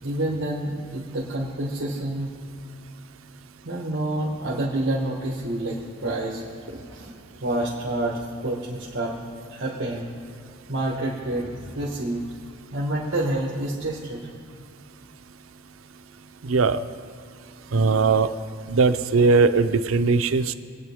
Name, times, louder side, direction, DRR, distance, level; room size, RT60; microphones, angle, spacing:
voice 1, 0.0-2.3 3.6-7.1 7.4-9.2 9.5-10.1 10.7-12.2 12.7-14.3, right 1 dB, 60° right, -4 dB, 1.5 m, -28 dB
voice 2, 16.4-16.8 17.7-18.3 18.7-20.5, right 4 dB, 90° right, 11 dB, 0.6 m, -19 dB
22.5 x 9.2 x 3.6 m, 2.3 s
head